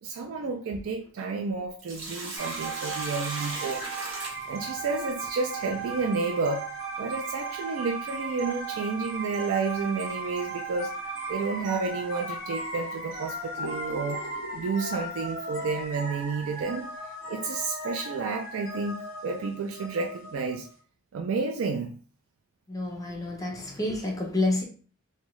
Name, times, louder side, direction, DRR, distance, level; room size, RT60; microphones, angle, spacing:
voice 1, 0.0-3.8 4.5-6.7 7.0-14.2 14.5-16.9 17.3-20.7 21.1-22.0, right 4 dB, 90° right, 0.4 m, -31 dB
Sink (filling or washing), 1.6-5.2 7.6-7.7 9.5-9.8 10.3-10.4 11.1-11.3 12.0-12.1 12.7-14.6, right 2 dB, 65° right, 1.0 m, -38 dB
sound 1, 2.4-20.7, right 3 dB, 35° right, 1.3 m, -36 dB
voice 2, 22.7-24.6, left 2 dB, 15° left, 0.5 m, -29 dB
3.5 x 2.2 x 3.0 m
head